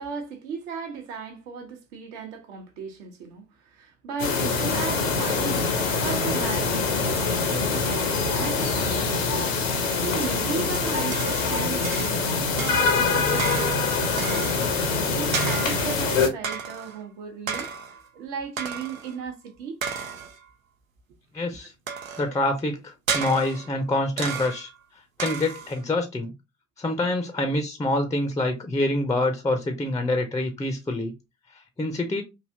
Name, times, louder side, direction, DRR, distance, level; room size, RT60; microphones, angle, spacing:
voice 1, 0.0-9.5 10.0-14.6 15.1-17.7 18.1-19.7 21.5-21.6, right 6 dB, 65° right, 0.9 m, -36 dB
sound 1, 4.2-16.3, left 4 dB, 80° left, 0.8 m, -24 dB
sound 2, 10.1-11.6 11.8-12.3 12.6-14.9 15.3-16.0 16.4-17.0 17.5-18.1 18.6-19.1 19.8-20.5 21.9-22.4 23.1-23.8 24.2-24.8 25.2-25.8, right 6 dB, 85° right, 0.5 m, -33 dB
voice 2, 21.3-21.7 22.2-24.7 25.2-26.3 26.8-31.1 31.8-32.2, left 2 dB, 10° left, 0.5 m, -26 dB
3.2 x 2.7 x 2.5 m
figure-of-eight pair, 55°, 39 cm